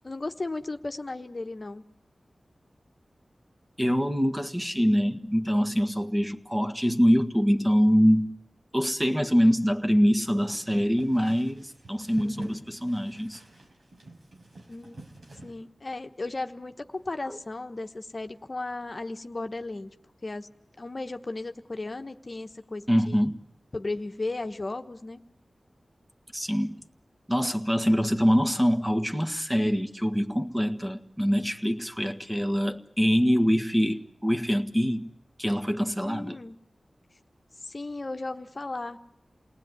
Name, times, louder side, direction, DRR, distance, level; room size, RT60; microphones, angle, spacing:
voice 1, 0.0-1.8 12.2-12.6 14.7-15.0 15.4-19.9 20.2-20.5 20.8-23.3 23.7-25.2 36.0-36.6 37.6-39.0, left 2 dB, 45° left, 1.1 m, -35 dB
voice 2, 3.8-8.4 8.7-13.4 17.3-17.4 22.9-23.4 26.3-26.8 27.3-35.1 35.4-36.4, equal, 10° right, 1.7 m, -24 dB
sound 1, 10.3-15.5, right 2 dB, 90° right, 4.7 m, -47 dB
28.5 x 19.0 x 9.6 m
wide cardioid pair, 55°, 0 cm